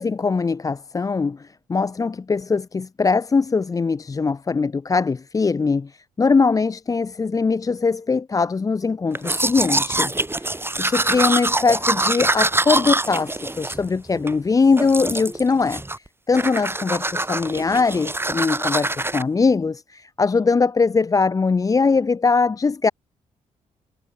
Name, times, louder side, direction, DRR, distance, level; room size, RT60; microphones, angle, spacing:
voice 1, 0.0-10.1 10.4-15.8 16.3-22.9, left 4 dB, 20° left, 0.4 m, -21 dB
Domestic sounds home sounds, 9.1-14.4 14.8-15.4 15.7-16.1 16.3-19.2, right 2 dB, 15° right, 1.3 m, -24 dB
hypercardioid pair, 45°, 16 cm